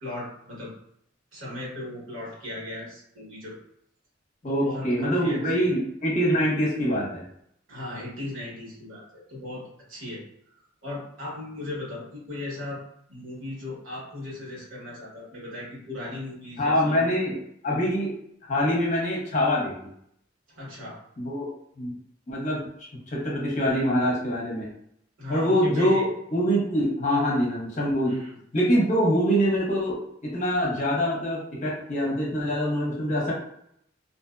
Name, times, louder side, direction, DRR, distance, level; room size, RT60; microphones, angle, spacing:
voice 1, 0.0-0.7 1.3-3.6 4.5-5.7 7.7-12.8 13.1-17.0 20.5-21.0 25.2-26.0 28.1-28.4, left 2 dB, 90° right, -6 dB, 1.3 m, -37 dB
voice 2, 4.4-7.2 16.6-17.4 17.6-18.2 18.5-19.7 21.2-21.5 21.8-22.0 22.3-22.7 23.1-24.7 25.3-26.0 26.3-28.1 28.5-33.3, equal, 40° left, -4 dB, 0.8 m, -24 dB
2.5 x 2.1 x 2.4 m, 0.72 s
head